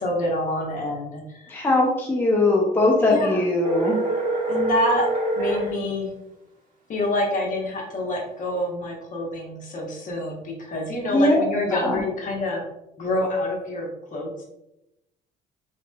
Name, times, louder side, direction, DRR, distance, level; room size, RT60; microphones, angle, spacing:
voice 1, 0.0-1.5 3.0-3.4 4.5-5.1 5.4-6.1 6.9-12.6 13.0-14.5, left 1 dB, 50° left, -1 dB, 1.0 m, -27 dB
voice 2, 1.5-4.0 11.1-11.4 11.8-12.0, left 2 dB, 10° left, -2 dB, 0.5 m, -20 dB
sound 1, 3.6-5.7, right 2 dB, 50° right, 1.2 m, -25 dB
3.0 x 2.9 x 2.2 m, 0.89 s
cardioid pair, 110°, 17 cm